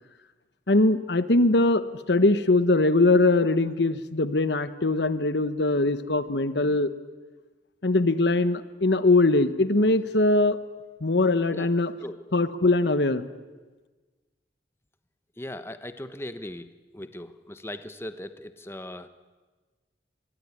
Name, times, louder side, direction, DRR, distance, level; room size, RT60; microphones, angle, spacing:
voice 1, 0.7-6.9 7.8-10.6 11.0-11.9 12.3-13.2, left 2 dB, 70° left, 12 dB, 1.1 m, -21 dB
voice 2, 15.4-19.1, left 1 dB, 15° left, 10 dB, 1.0 m, -38 dB
25.5 x 21.5 x 9.9 m, 1.3 s
head